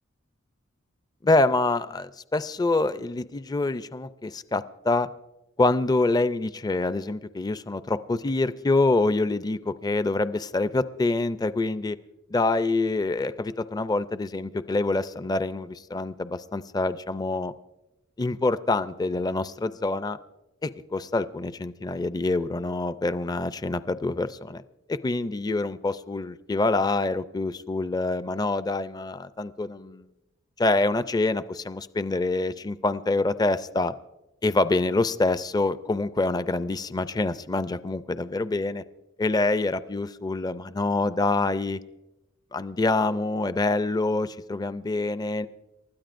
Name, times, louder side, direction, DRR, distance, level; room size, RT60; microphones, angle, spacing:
voice 1, 1.2-5.1 5.6-12.0 12.3-17.5 18.2-20.2 20.6-24.6 24.9-30.1 30.6-33.9 34.4-38.8 39.2-41.8 42.5-45.5, left 2 dB, 20° left, 13 dB, 0.4 m, -26 dB
29.0 x 13.0 x 2.6 m, 0.98 s
head